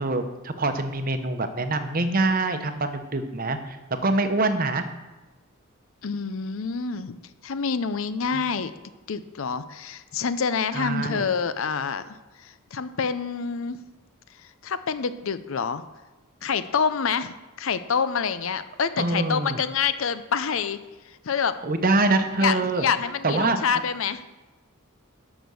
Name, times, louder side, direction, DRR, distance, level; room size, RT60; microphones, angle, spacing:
voice 1, 0.0-3.8 4.0-4.8 8.3-8.4 10.7-11.2 19.0-19.6 21.6-22.8 23.2-23.6, right 2 dB, 40° right, 8 dB, 0.9 m, -24 dB
voice 2, 6.0-7.2 7.4-8.7 9.1-12.0 12.4-13.8 14.6-15.8 16.4-20.8 21.1-21.6 22.4-24.2, left 6 dB, 65° left, 12 dB, 0.6 m, -27 dB
12.0 x 6.1 x 6.3 m, 1.2 s
head